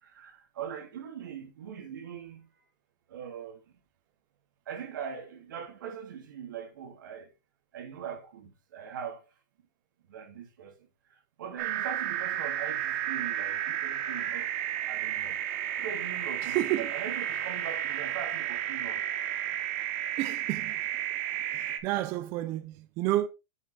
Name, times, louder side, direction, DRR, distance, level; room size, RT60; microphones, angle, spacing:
voice 1, 0.0-2.5 3.1-3.8 4.7-7.3 7.7-9.2 10.1-10.7 11.1-14.5 14.9-15.4 15.8-19.0, right 7 dB, 85° right, 2.5 m, -41 dB
sound 1, 11.6-21.8, right 11 dB, 40° right, 1.1 m, -32 dB
voice 2, 16.4-16.9 20.2-20.8 21.5-23.3, right 15 dB, 25° right, 0.4 m, -30 dB
7.1 x 6.6 x 3.3 m
supercardioid pair, 175°, 10 cm